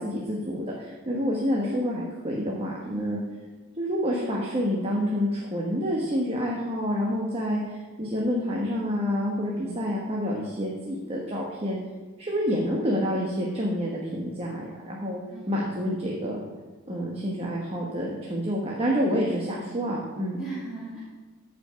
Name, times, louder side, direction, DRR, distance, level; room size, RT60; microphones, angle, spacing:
voice 1, 0.0-3.2 3.8-11.8 12.2-15.2 15.5-16.4 16.9-20.4, equal, 30° right, -3 dB, 1.2 m, -28 dB
voice 2, 15.3-15.8 20.4-21.0, right 2 dB, ahead, -10 dB, 2.4 m, -38 dB
13.0 x 5.3 x 5.7 m, 1.4 s
head